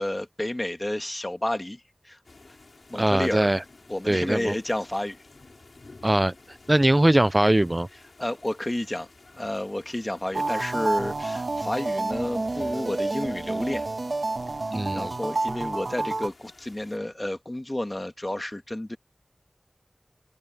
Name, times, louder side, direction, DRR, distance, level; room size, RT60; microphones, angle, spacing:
voice 1, 0.0-2.2 2.9-3.6 3.9-5.2 8.2-9.1 9.3-13.9 14.9-19.0, left 1 dB, 30° left, 2.3 m, -30 dB
sound 1, 2.2-17.0, left 3 dB, 85° left, 6.4 m, -53 dB
voice 2, 3.0-3.6 4.1-4.6 6.0-7.9 14.7-15.1, right 1 dB, 25° right, 0.4 m, -21 dB
sound 2, 10.3-16.3, right 2 dB, 80° right, 1.3 m, -29 dB
wide cardioid pair, 60°, 0 cm